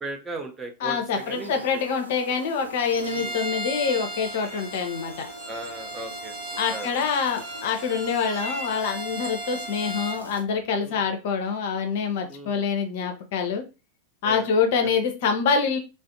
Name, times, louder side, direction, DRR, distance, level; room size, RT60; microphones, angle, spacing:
voice 1, 0.0-1.8 3.1-3.4 5.5-6.4 6.7-6.9 10.8-11.0 12.3-12.7 14.2-14.5, right 2 dB, 15° right, 4 dB, 0.5 m, -37 dB
voice 2, 0.8-5.3 6.6-13.6 14.2-15.8, left 6 dB, 50° left, 5 dB, 0.5 m, -26 dB
sound 1, 1.1-10.4, right 1 dB, 90° right, 0.5 m, -43 dB
Bowed string instrument, 3.0-10.2, right 1 dB, 40° right, 1.1 m, -36 dB
2.4 x 2.1 x 2.6 m, 0.30 s
figure-of-eight pair, 90°, 0 cm